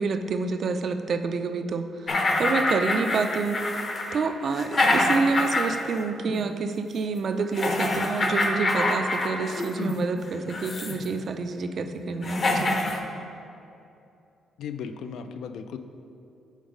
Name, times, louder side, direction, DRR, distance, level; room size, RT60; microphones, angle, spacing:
voice 1, 0.0-3.6 4.1-12.8, right 4 dB, 55° right, 8 dB, 0.3 m, -28 dB
sound 1, 2.1-6.0 6.3-6.4 7.5-10.0 10.5-11.1 11.8-11.9 12.2-13.0, left 2 dB, 40° left, 0.7 m, -26 dB
voice 2, 14.6-15.8, left 6 dB, 75° left, 8 dB, 0.3 m, -36 dB
5.2 x 3.9 x 5.1 m, 2.6 s
cardioid pair, 90°, 0 cm